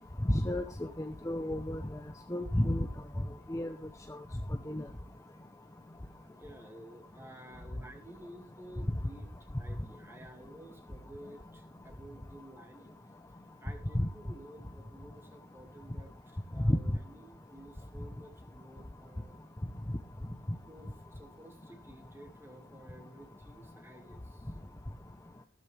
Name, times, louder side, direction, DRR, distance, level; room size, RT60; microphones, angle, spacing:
voice 1, 0.2-0.6 1.0-1.8 2.3-2.9 3.5-3.7 4.7-4.8 16.6-16.8, left 1 dB, 15° left, 6 dB, 0.8 m, -30 dB
voice 2, 6.2-13.0 13.6-19.4 20.7-24.7, right 1 dB, 10° right, 5 dB, 2.2 m, -53 dB
14.5 x 13.0 x 3.4 m, 0.30 s
head